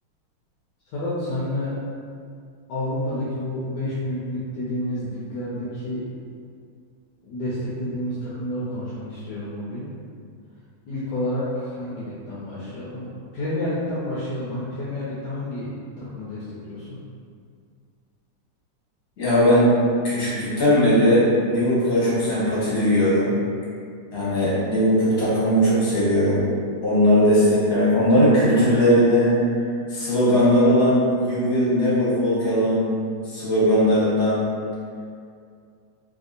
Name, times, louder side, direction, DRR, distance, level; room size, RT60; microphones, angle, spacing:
voice 1, 0.9-1.8 2.7-6.0 7.2-9.9 10.9-15.7 16.0-17.0, left 1 dB, 70° left, -9 dB, 1.1 m, -29 dB
voice 2, 19.2-19.7 20.0-23.3 24.1-26.5 26.8-29.4 29.9-32.9 33.2-34.5, equal, 45° left, -10 dB, 1.4 m, -19 dB
3.4 x 2.6 x 2.4 m, 2.3 s
omnidirectional pair, 2.3 m